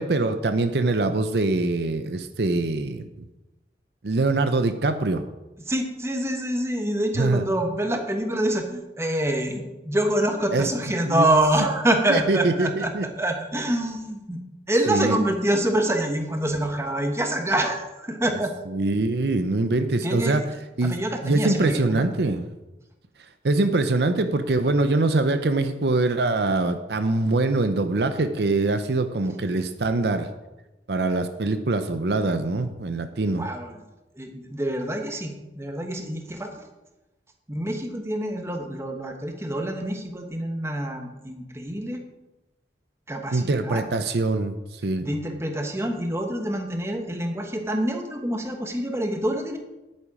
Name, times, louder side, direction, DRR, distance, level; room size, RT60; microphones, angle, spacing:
voice 1, 0.0-3.1 4.0-5.2 7.2-7.5 10.5-10.7 11.0-11.3 12.1-13.1 14.9-15.2 18.7-20.4 20.8-21.0 21.2-22.5 23.4-30.3 30.9-33.5 43.3-45.1, right 2 dB, 70° right, 9 dB, 0.7 m, -23 dB
voice 2, 5.7-12.9 13.2-14.4 14.7-18.5 20.0-20.4 20.8-22.1 33.3-33.8 34.2-36.7 37.5-42.0 43.1-43.8 45.0-49.6, right 1 dB, 15° right, 4 dB, 1.2 m, -26 dB
10.5 x 8.7 x 4.9 m, 1.0 s
head